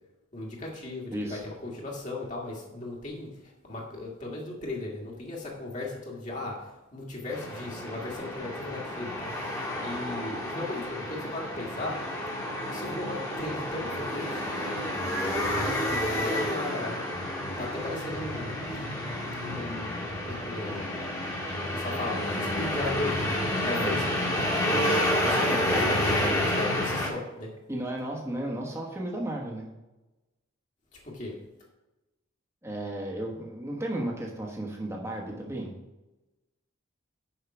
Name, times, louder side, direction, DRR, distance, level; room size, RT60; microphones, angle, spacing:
voice 1, 0.3-12.0 12.6-14.4 15.4-17.0 17.6-18.8 19.5-20.9 21.7-23.4 23.6-24.0 24.6-27.5 30.9-31.4, left 2 dB, 35° left, -3 dB, 1.7 m, -37 dB
sound 1, 7.3-27.1, left 1 dB, 15° left, 1.5 m, -30 dB
voice 2, 24.7-25.0 27.7-29.6 32.6-35.7, right 1 dB, 15° right, -1 dB, 1.2 m, -34 dB
6.8 x 5.7 x 5.9 m, 1.0 s
head